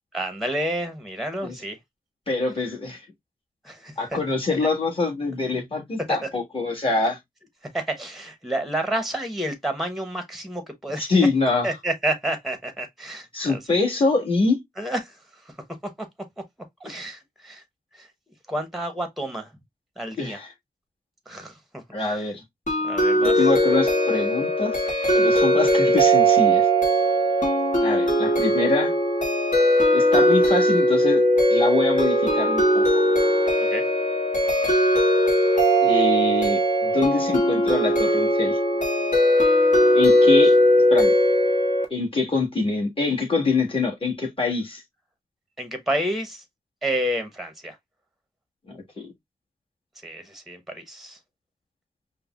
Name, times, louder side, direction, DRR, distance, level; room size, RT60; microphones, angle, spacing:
voice 1, 0.1-1.8 3.6-4.2 6.1-6.3 7.7-11.0 11.6-13.8 14.8-15.2 16.8-17.6 17.9-18.1 18.5-19.5 20.0-20.4 21.3-22.3 22.8-23.5 33.7-33.8 45.6-46.4 46.8-47.8 50.0-51.2, right 1 dB, ahead, 0.9 m, -30 dB
voice 2, 2.3-3.1 4.0-7.2 11.0-11.7 13.3-14.6 20.2-20.5 21.9-22.4 23.2-24.8 25.1-26.7 27.8-28.9 29.9-31.2 31.5-33.0 35.8-38.6 39.9-40.6 40.9-41.1 41.9-44.8 48.7-49.1, left 3 dB, 35° left, 1.6 m, -25 dB
sound 1, 22.7-41.9, equal, 55° left, 1.2 m, -19 dB
5.3 x 2.1 x 2.3 m
wide cardioid pair, 80°, 15 cm